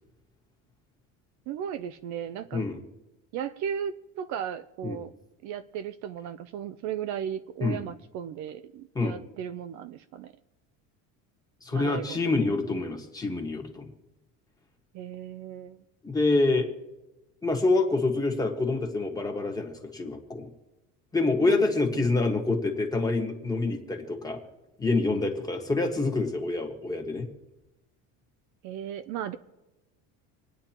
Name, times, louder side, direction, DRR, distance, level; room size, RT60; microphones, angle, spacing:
voice 1, 1.5-2.6 3.3-5.1 5.4-10.3 11.7-12.5 14.9-15.8 21.5-22.1 28.6-29.4, right 9 dB, 55° right, 11 dB, 0.5 m, -36 dB
voice 2, 11.6-13.9 16.0-16.7 17.4-20.5 21.1-24.4 24.8-27.3, left 3 dB, 10° left, 2 dB, 1.5 m, -26 dB
27.5 x 9.4 x 3.0 m, 0.99 s
cardioid pair, 160°, 36 cm